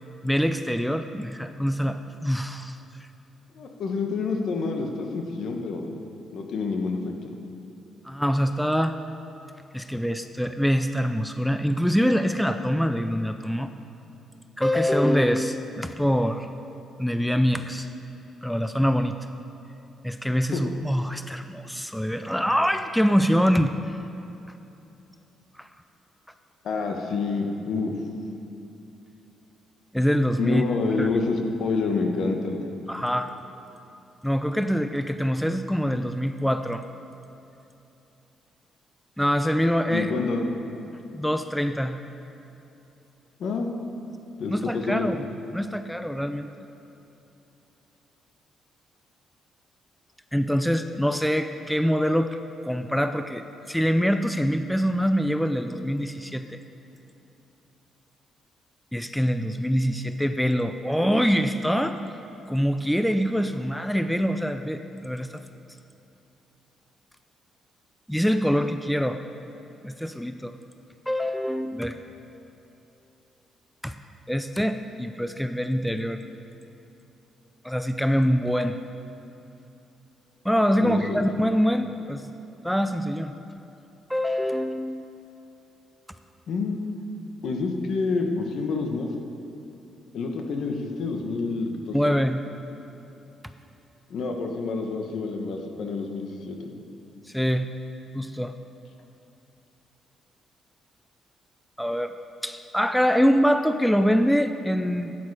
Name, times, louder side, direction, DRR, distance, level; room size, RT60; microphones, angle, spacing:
voice 1, 0.2-2.8 8.0-9.0 9.7-13.7 14.6-16.5 17.0-17.9 18.4-19.2 20.0-24.0 25.6-25.7 29.9-30.6 31.0-31.1 32.9-33.3 34.2-36.8 39.2-40.1 41.1-42.0 44.5-46.5 50.3-52.4 52.6-56.6 58.9-62.0 62.5-65.4 68.1-69.2 69.8-70.5 71.1-72.0 73.8-73.9 74.3-76.2 77.6-78.8 80.4-82.2 82.6-83.3 84.1-85.0 91.9-92.4 97.3-97.7 98.1-98.5 101.8-102.1 102.4-105.1, equal, ahead, 9 dB, 0.4 m, -24 dB
voice 2, 3.5-5.9 6.3-7.1 20.5-20.6 26.6-27.9 30.4-32.6 39.9-40.4 43.4-43.7 44.4-45.1 80.8-81.2 86.5-86.8 87.4-89.1 90.1-92.1 94.1-96.6, left 4 dB, 65° left, 3 dB, 1.2 m, -28 dB
12.0 x 9.2 x 4.8 m, 2.9 s
cardioid pair, 90°, 0 cm